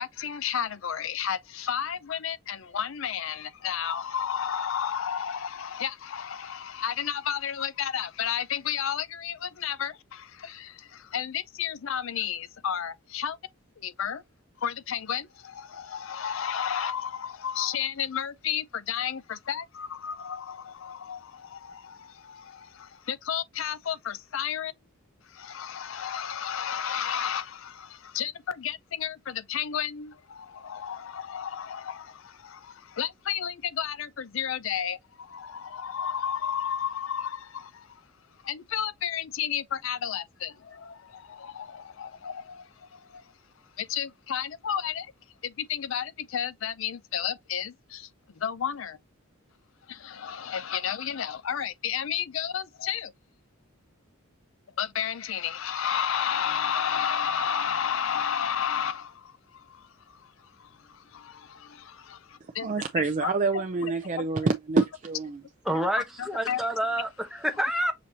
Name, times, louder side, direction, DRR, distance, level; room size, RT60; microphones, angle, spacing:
voice 1, 0.0-13.4 13.8-14.2 14.6-24.7 25.2-38.0 38.4-43.3 43.8-45.1 45.4-48.1 48.4-49.0 49.9-53.1 54.8-62.7 63.0-64.2 65.7-66.7, left 8 dB, 65° left, 0.5 m, -32 dB
voice 2, 62.6-65.4, right 3 dB, 35° right, 0.4 m, -27 dB
voice 3, 65.7-67.9, right 1 dB, ahead, 0.8 m, -28 dB
6.2 x 2.7 x 2.8 m
head